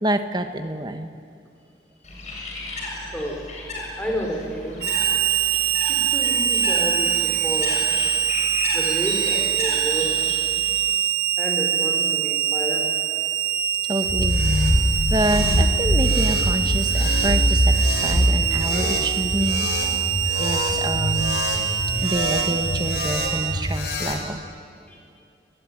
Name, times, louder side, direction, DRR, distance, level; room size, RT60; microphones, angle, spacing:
voice 1, 0.0-1.1 13.9-14.4 15.1-17.7 18.0-19.9 20.4-21.4 22.0-24.4, right 1 dB, 25° right, 8 dB, 1.5 m, -27 dB
Bird, 2.0-10.9, left 2 dB, 40° left, 6.8 m, -34 dB
voice 2, 3.1-3.4 4.0-4.8 5.9-7.7 8.7-10.1 11.4-12.9 24.9-25.0, equal, 10° left, 0 dB, 5.1 m, -30 dB
Harmonica, 4.8-23.6, right 9 dB, 65° right, 1.2 m, -24 dB
sound 1, 14.1-24.2, equal, 75° left, 4.5 m, -23 dB
29.0 x 21.0 x 9.8 m, 2.3 s
head